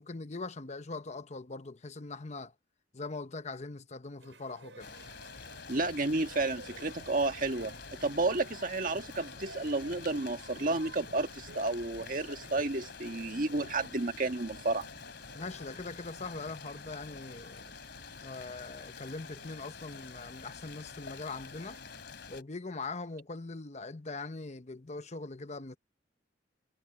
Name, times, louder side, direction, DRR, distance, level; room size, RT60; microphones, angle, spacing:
voice 1, 0.0-2.5 2.9-4.9 15.3-17.6 18.2-21.8 22.3-25.8, left 3 dB, 40° left, 0.9 m, -41 dB
sound 1, 4.2-22.1, right 3 dB, 80° right, 6.0 m, -56 dB
sound 2, 4.8-22.4, left 5 dB, 65° left, 3.1 m, -48 dB
voice 2, 5.7-7.7 8.0-14.9, right 2 dB, 45° right, 1.6 m, -31 dB
head